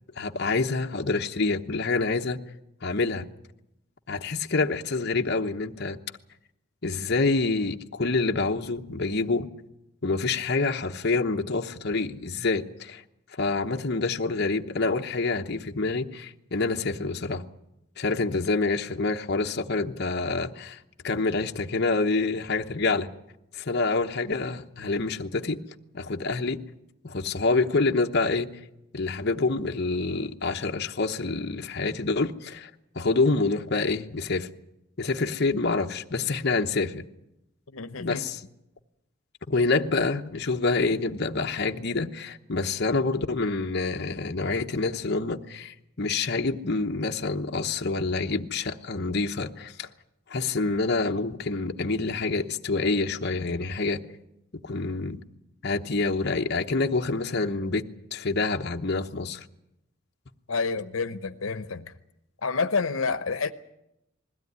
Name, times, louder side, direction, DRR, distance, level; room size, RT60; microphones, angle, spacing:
voice 1, 0.2-2.4 2.8-3.3 4.1-6.0 6.8-9.5 10.0-13.0 13.4-17.4 18.0-20.8 21.0-23.1 23.5-25.6 25.9-26.6 27.0-28.5 28.9-32.7 32.9-34.5 35.0-37.0 38.0-38.4 39.5-49.9 50.3-54.0 54.6-55.2 55.6-57.8 58.1-59.4, left 3 dB, 55° left, 1.0 m, -27 dB
voice 2, 37.7-38.2 60.5-61.9 62.4-63.5, left 4 dB, 90° left, 0.9 m, -28 dB
21.0 x 16.0 x 9.5 m
head